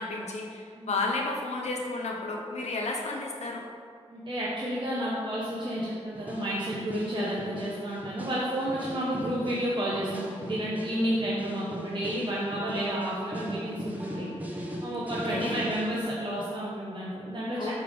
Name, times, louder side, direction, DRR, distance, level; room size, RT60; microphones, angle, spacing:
voice 1, 0.0-3.6 15.1-15.6 17.6-17.7, left 3 dB, 70° left, 0 dB, 0.8 m, -32 dB
voice 2, 4.1-14.3 14.8-17.7, equal, 40° right, -7 dB, 1.2 m, -31 dB
sound 1, 6.1-16.0, equal, 15° right, 1.1 m, -40 dB
7.9 x 3.4 x 5.2 m, 2.2 s
cardioid pair, 60°, 12 cm